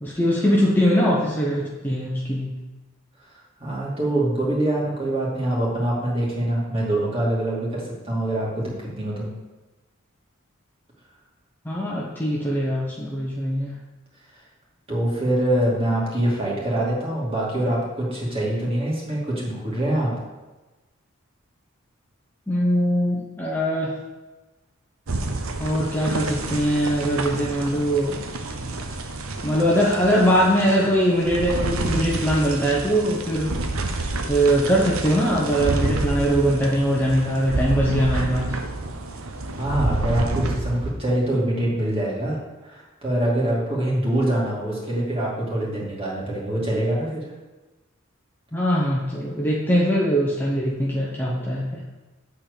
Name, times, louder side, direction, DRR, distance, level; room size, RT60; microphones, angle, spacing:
voice 1, 0.0-2.5 11.6-13.8 22.5-23.9 25.6-28.2 29.4-33.5 33.8-38.5 48.5-51.8, equal, 10° left, -5 dB, 0.9 m, -22 dB
voice 2, 3.6-9.3 14.9-20.1 39.5-42.4 42.6-47.3, right 1 dB, 25° right, -5 dB, 2.5 m, -24 dB
sound 1, 25.1-41.0, right 2 dB, 80° right, 0.9 m, -29 dB
8.3 x 4.5 x 6.9 m, 1.1 s
head